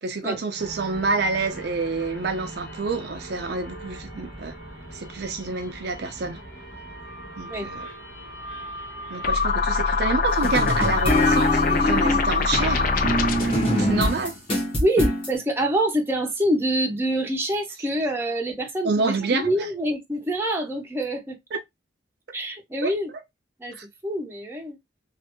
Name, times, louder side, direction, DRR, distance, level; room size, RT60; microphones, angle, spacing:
voice 1, 0.0-4.5 4.9-6.4 7.4-7.9 9.1-12.9 13.4-14.3 18.8-19.5 21.5-21.6 22.8-22.9 23.7-23.8, right 3 dB, 55° right, 0.5 m, -28 dB
sound 1, 0.6-13.4, right 1 dB, 65° left, 1.1 m, -40 dB
sound 2, 9.2-13.6, left 4 dB, 45° left, 0.5 m, -23 dB
sound 3, 10.4-15.3, left 1 dB, 30° left, 1.2 m, -24 dB
voice 2, 14.8-21.4 22.3-23.1 23.6-24.8, right 1 dB, 10° right, 0.6 m, -26 dB
3.2 x 2.5 x 2.9 m
head